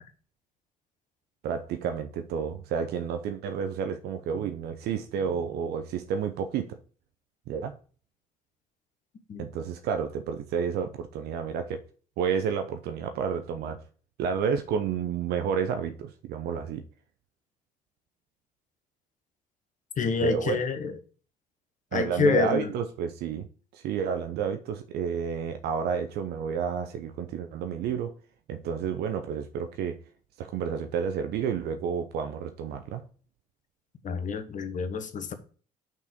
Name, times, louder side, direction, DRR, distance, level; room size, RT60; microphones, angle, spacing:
voice 1, 1.4-6.8 7.5-7.8 9.4-11.8 12.2-13.8 14.2-16.8 20.2-20.6 21.9-23.5 23.7-28.1 28.5-30.0 30.4-33.0, right 7 dB, 60° right, 0.7 m, -30 dB
voice 2, 20.0-20.9 21.9-22.7 34.0-35.3, left 5 dB, 45° left, 1.2 m, -27 dB
5.8 x 4.7 x 5.2 m
hypercardioid pair, 50°, 19 cm